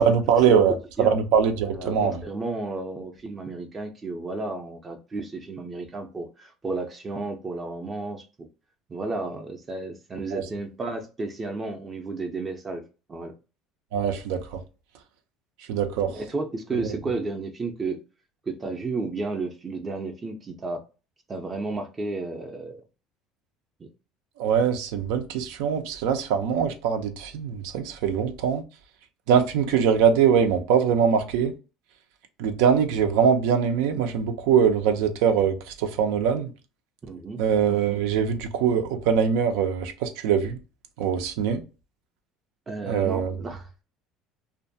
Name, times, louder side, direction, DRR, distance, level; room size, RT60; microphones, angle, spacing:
voice 1, 0.0-2.2 10.3-10.4 13.9-14.6 15.7-16.2 24.4-28.6 29.3-31.5 32.4-36.5 37.4-40.6 41.0-41.6 42.9-43.3, right 7 dB, 85° right, 0.5 m, -22 dB
voice 2, 1.7-8.5 8.9-12.8 13.1-13.3 16.0-18.0 18.5-20.8 21.3-22.8 23.8-23.9 37.0-37.4 42.7-43.7, right 3 dB, 20° right, 0.5 m, -32 dB
2.5 x 2.2 x 2.6 m
cardioid pair, 140°, 0 cm